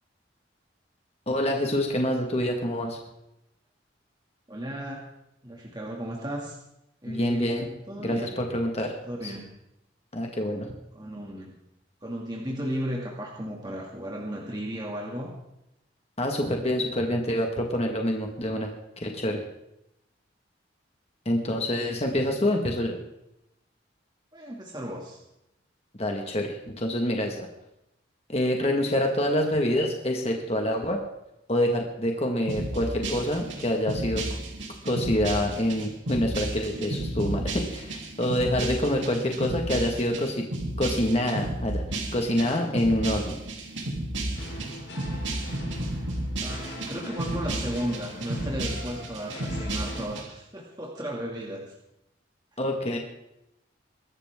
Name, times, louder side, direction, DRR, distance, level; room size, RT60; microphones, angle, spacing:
voice 1, 1.3-3.0 7.1-7.7 8.0-8.9 9.2-9.3 10.1-10.7 16.2-18.7 19.0-19.4 21.3-23.0 26.0-27.5 28.3-31.0 31.5-34.2 34.8-40.4 40.8-41.8 42.1-43.3 52.6-53.0, left 1 dB, 35° left, 2 dB, 1.8 m, -26 dB
voice 2, 4.5-5.1 5.4-6.6 7.0-8.2 9.1-9.5 10.9-11.5 12.0-15.4 24.3-25.2 46.4-51.7, equal, 20° right, -3 dB, 2.4 m, -35 dB
sound 1, 32.5-50.2, right 1 dB, 85° right, 3.2 m, -33 dB
sound 2, 44.3-50.0, left 1 dB, 80° left, 7.4 m, -41 dB
23.0 x 13.0 x 3.7 m, 0.85 s
head